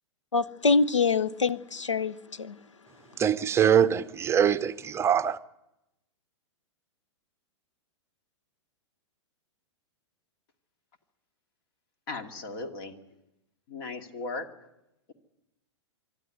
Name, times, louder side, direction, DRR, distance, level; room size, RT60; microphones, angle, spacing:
voice 1, 0.3-2.6, left 4 dB, 80° left, 0.9 m, -25 dB
voice 2, 3.2-5.4, right 9 dB, 15° right, 0.7 m, -23 dB
voice 3, 12.1-13.0 13.7-14.7, left 3 dB, 50° left, 2.4 m, -37 dB
25.5 x 12.5 x 9.3 m
figure-of-eight pair, 105°, 15 cm